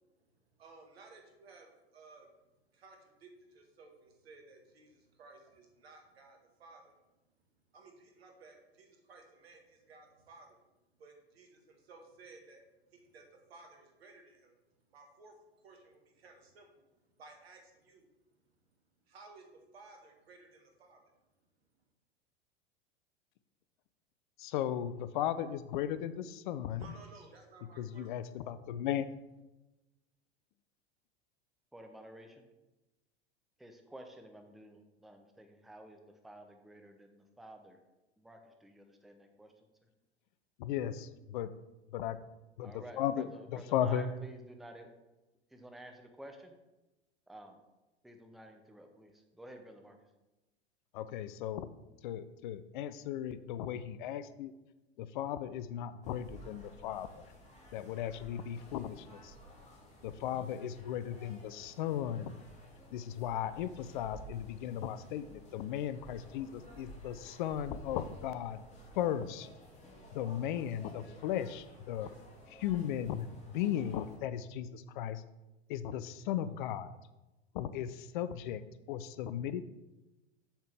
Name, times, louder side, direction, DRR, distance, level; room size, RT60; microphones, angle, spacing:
voice 1, 0.6-2.3 2.7-7.0 7.7-10.6 11.0-14.5 14.9-18.1 19.1-21.0 26.7-28.1, right 3 dB, 65° right, 2 dB, 1.8 m, -57 dB
voice 2, 24.4-26.9 27.8-29.1 40.6-41.5 41.9-42.2 42.6-44.1 50.9-51.7 52.0-54.5 55.0-57.3 57.7-59.3 60.0-62.4 62.9-68.6 69.0-69.5 70.1-72.1 72.5-75.2 75.7-77.0 77.5-78.6 78.9-79.7, left 10 dB, 50° left, 13 dB, 0.5 m, -36 dB
voice 3, 31.7-32.5 33.6-37.8 38.2-39.7 42.6-44.9 45.5-46.5 47.3-47.6 48.0-50.0, right 1 dB, ahead, 5 dB, 0.7 m, -52 dB
sound 1, 56.0-74.2, right 1 dB, 20° left, 2.4 m, -54 dB
7.4 x 7.2 x 3.5 m, 1.0 s
figure-of-eight pair, 85°, 33 cm